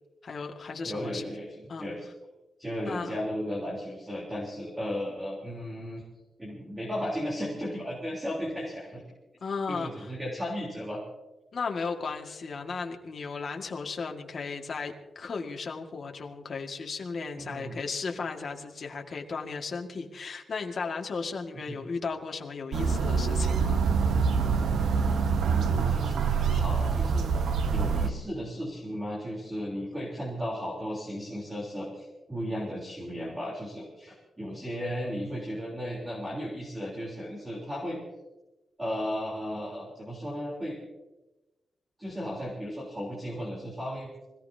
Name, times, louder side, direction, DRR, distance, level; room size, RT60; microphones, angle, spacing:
voice 1, 0.2-1.2 1.7-1.9 2.8-3.2 9.4-10.1 11.5-23.8, left 4 dB, 45° left, 2 dB, 1.9 m, -35 dB
voice 2, 0.8-2.0 2.6-6.0 6.4-9.0 9.7-11.0 17.4-17.8 21.5-21.8 25.4-38.0 38.8-40.8 42.0-44.1, equal, 10° right, -4 dB, 3.7 m, -35 dB
sound 1, 22.7-28.1, right 5 dB, 85° right, 1.0 m, -25 dB
25.5 x 17.0 x 2.8 m, 1.1 s
wide cardioid pair, 150°, 0 cm